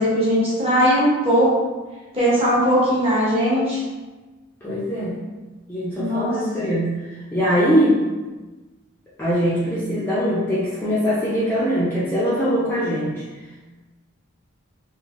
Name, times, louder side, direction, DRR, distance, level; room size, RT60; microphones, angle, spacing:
voice 1, 0.0-1.5 2.1-3.8 6.0-6.3, equal, 25° right, -8 dB, 0.9 m, -19 dB
voice 2, 4.6-5.2 5.7-8.0 9.2-13.2, equal, 10° left, -10 dB, 0.4 m, -22 dB
3.1 x 2.4 x 2.5 m, 1.2 s
head